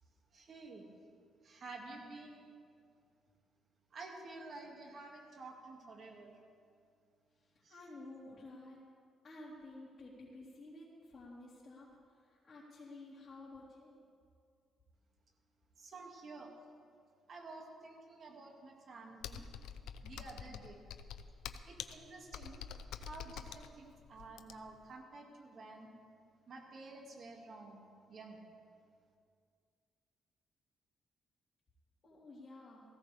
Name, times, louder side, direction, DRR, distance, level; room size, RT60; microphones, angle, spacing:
voice 1, 0.3-0.9 1.4-2.5 3.9-6.3 7.6-7.8 15.8-16.5 17.3-19.5 20.0-20.8 21.6-22.6 22.9-25.9 26.5-28.4, right 3 dB, 50° right, 1 dB, 2.3 m, -51 dB
voice 2, 7.7-8.8 9.2-11.9 12.2-14.0 32.0-32.8, left 2 dB, 40° left, -9 dB, 3.7 m, -52 dB
Computer keyboard, 19.2-24.8, left 8 dB, 85° left, 0.6 m, -47 dB
18.5 x 15.5 x 3.5 m, 2.2 s
cardioid pair, 90°, 0 cm